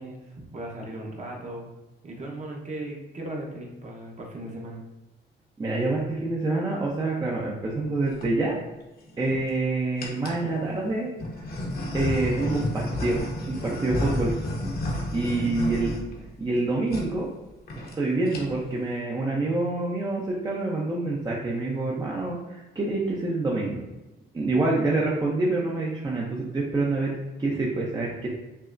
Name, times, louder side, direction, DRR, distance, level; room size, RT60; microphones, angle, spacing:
voice 1, 0.0-1.7 2.0-4.8 14.0-14.4 15.2-15.7, right 1 dB, 35° right, -1 dB, 1.0 m, -38 dB
voice 2, 5.6-8.6 9.2-11.1 11.9-14.3 15.1-15.9 16.4-17.3 18.0-23.8 24.3-28.3, right 2 dB, 20° right, -3 dB, 0.6 m, -27 dB
sound 1, 7.9-8.3 9.0-9.5 10.0-10.5 11.2-16.6 16.9-17.1 17.4-17.5 17.7-18.0 18.2-18.7, left 1 dB, 50° left, 0.9 m, -31 dB
5.5 x 2.0 x 2.5 m, 1.0 s
cardioid pair, 90°, 20 cm